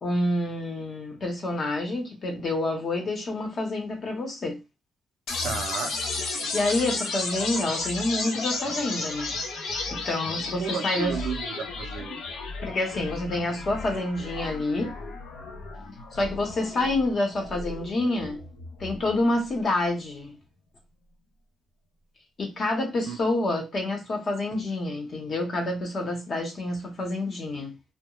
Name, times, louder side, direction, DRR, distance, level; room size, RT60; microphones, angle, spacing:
voice 1, 0.0-4.6 6.5-9.3 9.9-11.2 12.6-14.9 16.1-18.4 18.8-20.3 22.4-27.7, left 2 dB, 50° left, 0.8 m, -28 dB
sound 1, 5.3-19.3, left 3 dB, 75° left, 0.7 m, -33 dB
voice 2, 5.4-5.9 10.6-12.2 23.1-23.2, right 7 dB, 80° right, 0.5 m, -33 dB
2.3 x 2.1 x 3.0 m
cardioid pair, 90°, 0 cm